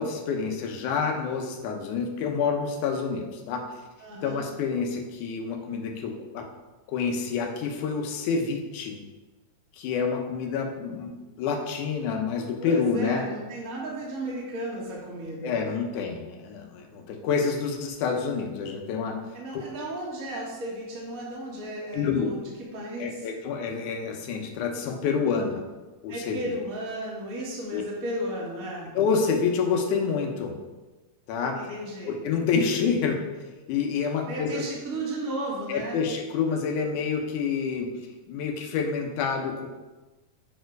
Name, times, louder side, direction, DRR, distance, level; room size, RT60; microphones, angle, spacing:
voice 1, 0.0-3.6 4.2-6.5 6.9-9.0 9.8-11.1 11.4-13.2 15.4-19.2 19.5-19.6 21.9-22.3 23.0-25.6 26.0-26.4 27.7-27.8 28.9-30.6 31.3-31.6 32.1-33.2 33.7-34.6 35.7-37.9 38.3-39.7, left 5 dB, 90° left, 3 dB, 2.4 m, -28 dB
voice 2, 4.0-4.5 12.6-15.7 19.3-22.4 22.7-23.3 26.1-28.9 31.5-32.2 34.3-36.0, right 1 dB, 35° right, -5 dB, 1.5 m, -34 dB
7.5 x 4.5 x 4.6 m, 1.2 s
omnidirectional pair, 3.4 m